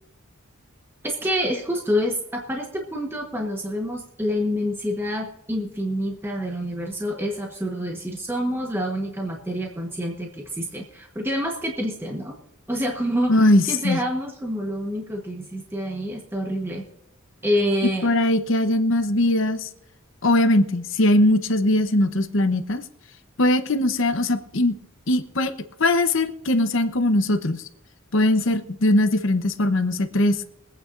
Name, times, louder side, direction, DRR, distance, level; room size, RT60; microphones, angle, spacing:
voice 1, 1.0-12.4 12.7-13.4 13.7-16.8 17.4-18.1, equal, 10° right, 1 dB, 1.1 m, -27 dB
voice 2, 13.3-14.0 18.0-19.7 20.2-22.8 23.4-24.8 25.1-25.5 25.8-27.6 28.1-30.5, left 1 dB, 65° left, 9 dB, 0.8 m, -20 dB
23.5 x 9.0 x 2.5 m, 0.79 s
head